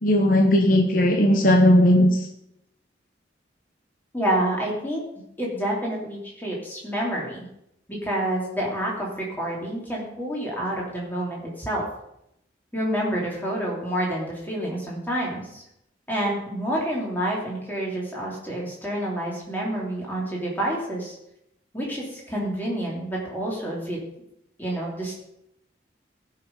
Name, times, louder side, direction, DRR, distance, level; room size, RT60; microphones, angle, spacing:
voice 1, 0.0-2.3, left 1 dB, 45° left, 3 dB, 1.0 m, -17 dB
voice 2, 4.1-5.0 5.4-7.4 7.9-11.8 12.7-15.6 16.1-21.1 21.7-24.0 24.6-25.1, right 1 dB, 10° left, -4 dB, 2.8 m, -28 dB
15.0 x 5.9 x 5.3 m, 0.80 s
head